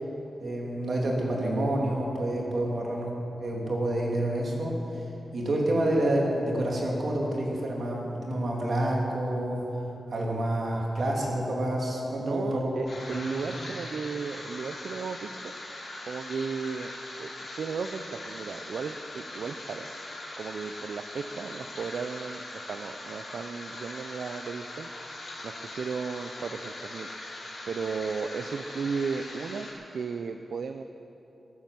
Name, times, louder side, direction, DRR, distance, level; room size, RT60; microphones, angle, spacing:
voice 1, 0.4-4.8 5.3-9.7 10.1-12.7 13.1-13.2 13.5-13.6, right 1 dB, 50° right, -2 dB, 2.9 m, -28 dB
voice 2, 12.2-15.5 16.1-16.9 17.2-17.3 17.6-19.9 20.4-27.1 27.7-30.8, right 5 dB, 65° right, 7 dB, 0.5 m, -35 dB
sound 1, 12.9-29.7, left 2 dB, 50° left, 4.2 m, -41 dB
18.5 x 9.5 x 7.6 m, 3.0 s
wide cardioid pair, 175°, 0 cm